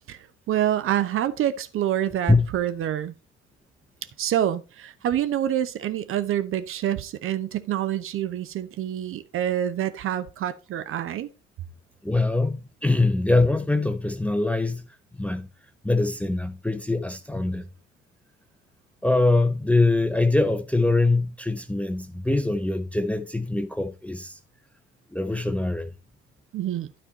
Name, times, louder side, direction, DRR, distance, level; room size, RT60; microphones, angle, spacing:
voice 1, 0.5-3.1 4.2-11.3 26.5-26.9, right 11 dB, 40° right, 0.9 m, -27 dB
voice 2, 12.0-14.9 15.2-15.5 15.8-17.7 19.0-24.4 25.1-25.9, left 2 dB, 5° left, 0.7 m, -23 dB
12.0 x 4.4 x 4.2 m
figure-of-eight pair, 60°, 34 cm